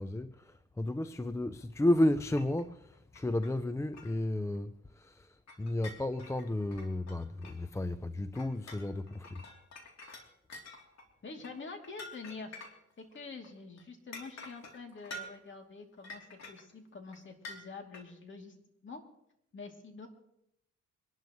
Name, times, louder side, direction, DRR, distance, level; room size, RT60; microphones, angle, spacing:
voice 1, 0.0-9.5, left 1 dB, 10° left, 0.5 m, -33 dB
sound 1, 2.4-2.6 2.9-3.6 3.9-4.2 4.5-4.6 5.5-7.8 8.3-13.2 13.4-13.5 13.8-13.9 14.1-15.5 16.0-16.7 17.1-17.2 17.4-18.0, left 2 dB, 60° left, 3.1 m, -48 dB
voice 2, 11.2-12.5 13.0-18.5 18.8-19.0 19.5-20.1, left 4 dB, 40° left, 2.8 m, -46 dB
25.0 x 12.0 x 3.1 m
cardioid pair, 90°, 30 cm